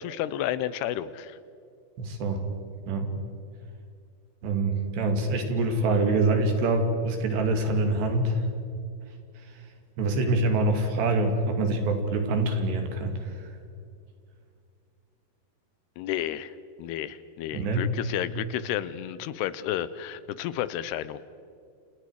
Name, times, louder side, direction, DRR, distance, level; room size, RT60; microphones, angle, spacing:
voice 1, 0.0-1.4 16.0-21.2, left 12 dB, 85° left, 15 dB, 2.8 m, -31 dB
voice 2, 2.0-2.4 2.9-3.1 4.4-8.4 10.0-13.4 17.5-17.9, right 2 dB, 85° right, 4 dB, 4.6 m, -25 dB
29.5 x 27.5 x 4.8 m, 2.4 s
omnidirectional pair, 4.7 m